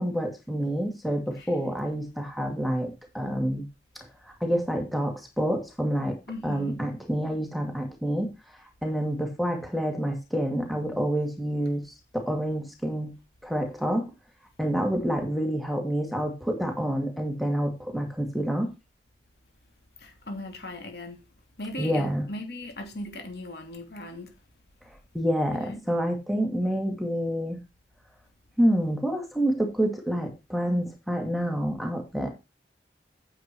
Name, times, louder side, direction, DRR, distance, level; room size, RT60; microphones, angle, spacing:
voice 1, 0.0-3.7 4.4-6.2 6.4-13.1 13.4-14.1 14.6-18.7 21.8-22.3 25.1-27.6 28.6-32.3, equal, ahead, 2.2 m, -28 dB
voice 2, 6.3-6.9 20.0-21.2 21.6-24.4 25.5-25.8, left 1 dB, 60° left, 3.0 m, -38 dB
9.4 x 7.9 x 4.6 m
head